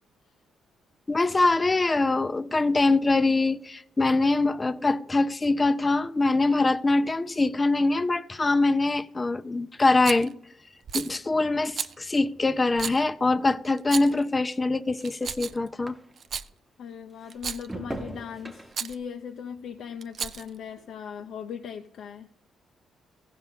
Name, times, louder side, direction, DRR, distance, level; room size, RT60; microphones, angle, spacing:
voice 1, 1.1-10.3 10.9-15.9, left 3 dB, 25° left, 0.5 m, -23 dB
sound 1, 9.7-16.5 16.9-21.4 21.7-22.2, right 1 dB, 10° right, 1.0 m, -46 dB
Rattle, 10.0-10.3 10.9-11.1 11.8-11.9 12.8-13.0 13.8-14.2 15.0-15.7 16.2-16.5 17.3-17.7 18.7-19.0 20.0-20.6, right 6 dB, 50° right, 0.4 m, -33 dB
voice 2, 16.8-22.3, left 7 dB, 70° left, 0.6 m, -39 dB
15.0 x 5.5 x 5.7 m
cardioid pair, 90°, 0 cm